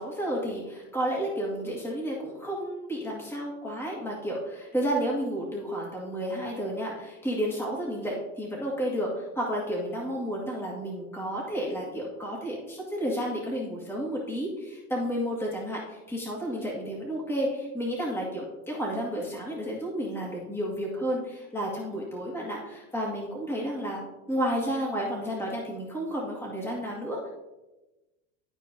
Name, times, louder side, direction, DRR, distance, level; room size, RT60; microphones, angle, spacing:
voice 1, 0.0-24.0 24.3-27.3, equal, 5° left, -4 dB, 1.9 m, -31 dB
12.0 x 4.5 x 2.7 m, 1.1 s
supercardioid pair, 115°, 38 cm